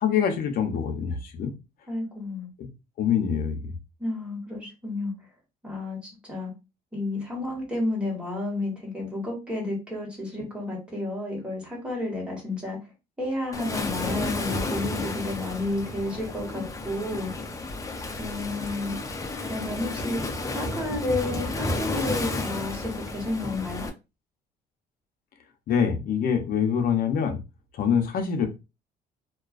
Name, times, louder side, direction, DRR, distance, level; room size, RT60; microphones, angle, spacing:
voice 1, 0.0-1.5 2.6-2.7 3.0-3.6 25.7-27.4 27.7-28.5, left 7 dB, 60° left, 5 dB, 0.6 m, -25 dB
voice 2, 1.9-2.5 4.0-5.1 5.6-6.5 6.9-12.8 13.2-17.3 18.2-18.9 19.5-23.9, left 2 dB, 5° right, -3 dB, 1.2 m, -31 dB
Waves surf, 13.5-23.9, left 2 dB, 20° left, 0.4 m, -32 dB
2.3 x 2.2 x 2.3 m, 0.27 s
cardioid pair, 110°, 17 cm